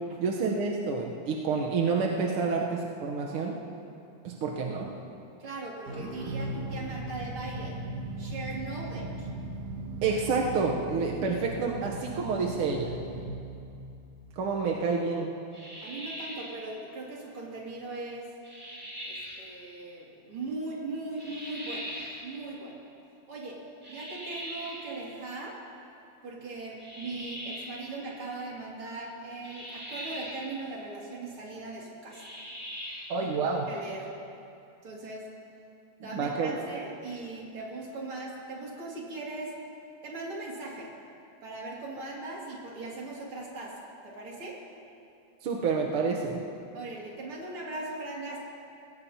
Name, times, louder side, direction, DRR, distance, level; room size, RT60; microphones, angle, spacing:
voice 1, 0.2-3.5 4.2-4.9 10.0-12.9 14.4-15.3 33.1-33.7 36.1-36.7 45.4-46.4, right 4 dB, 65° right, -1 dB, 1.5 m, -29 dB
voice 2, 5.4-7.8 8.2-9.3 15.8-18.3 19.0-21.9 22.2-22.8 23.3-23.6 23.9-25.6 26.2-32.3 33.4-34.1 34.8-35.3 36.0-39.5 40.0-40.9 41.4-43.7 44.0-44.6 46.7-48.4, right 2 dB, 45° right, -4 dB, 3.2 m, -39 dB
sound 1, 5.9-14.6, right 2 dB, 85° right, 3.0 m, -38 dB
sound 2, 15.5-16.6 18.4-19.4 21.2-22.2 23.8-24.9 26.8-27.8 29.4-30.5 32.1-33.2, equal, 5° right, 2.6 m, -41 dB
21.5 x 17.0 x 2.9 m, 2.6 s
omnidirectional pair, 3.4 m